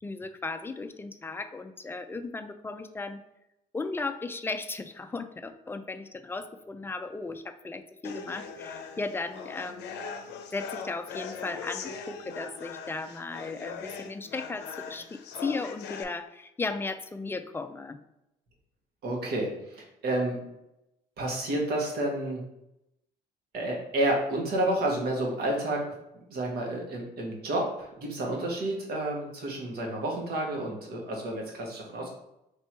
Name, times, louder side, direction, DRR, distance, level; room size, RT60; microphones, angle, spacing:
voice 1, 0.0-3.2 3.7-10.0 10.5-18.0, left 3 dB, 15° left, 9 dB, 0.3 m, -36 dB
sound 1, 8.0-16.0, left 6 dB, 80° left, 0.5 m, -40 dB
voice 2, 19.0-20.4 21.2-22.4 23.5-25.8 26.3-32.1, right 1 dB, 65° right, -1 dB, 1.4 m, -30 dB
3.3 x 2.9 x 4.5 m, 0.87 s
cardioid pair, 110°, 17 cm